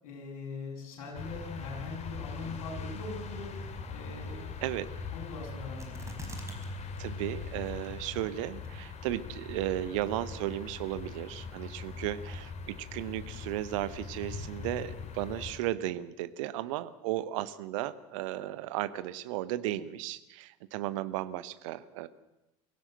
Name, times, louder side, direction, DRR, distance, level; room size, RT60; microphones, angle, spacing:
voice 1, 0.0-3.5 3.9-4.5 5.1-6.2, left 4 dB, 60° left, -1 dB, 7.3 m, -41 dB
sound 1, 1.1-15.6, left 4 dB, 35° left, 2.7 m, -41 dB
sound 2, 5.8-6.7 7.0-7.1 7.6-8.1 8.6-8.7, right 2 dB, 15° right, 5.1 m, -44 dB
voice 2, 7.0-22.1, right 14 dB, 60° right, 14 dB, 1.1 m, -35 dB
23.5 x 16.5 x 8.0 m, 0.96 s
figure-of-eight pair, 65°, 19 cm